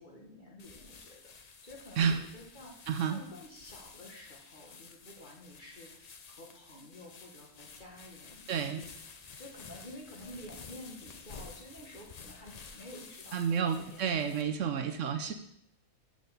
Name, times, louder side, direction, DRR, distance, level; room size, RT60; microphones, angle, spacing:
voice 1, 0.0-1.3 1.6-8.8 9.4-15.0, left 1 dB, 35° left, -1 dB, 1.3 m, -51 dB
sound 1, 0.6-14.4, left 5 dB, 85° left, 0.3 m, -52 dB
voice 2, 2.9-3.2 8.5-8.8 13.3-15.3, right 7 dB, 65° right, 8 dB, 0.8 m, -30 dB
6.2 x 4.9 x 6.7 m, 0.74 s
omnidirectional pair, 1.6 m